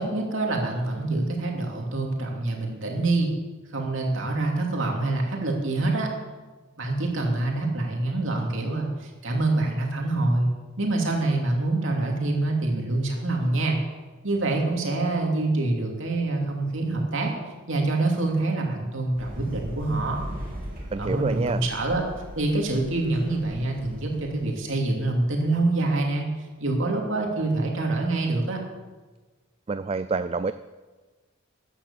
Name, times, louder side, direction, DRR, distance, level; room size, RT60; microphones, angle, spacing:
voice 1, 0.0-3.3 3.7-6.1 6.8-10.5 10.8-13.8 14.2-17.3 17.7-20.2 21.0-22.0 22.4-26.3 26.6-28.6, right 2 dB, 65° right, 0 dB, 2.9 m, -25 dB
sound 1, 19.2-24.5, equal, 45° right, 3.3 m, -39 dB
voice 2, 20.9-21.6 29.7-30.5, right 4 dB, 30° right, 12 dB, 0.3 m, -27 dB
14.0 x 9.9 x 7.0 m, 1.3 s
head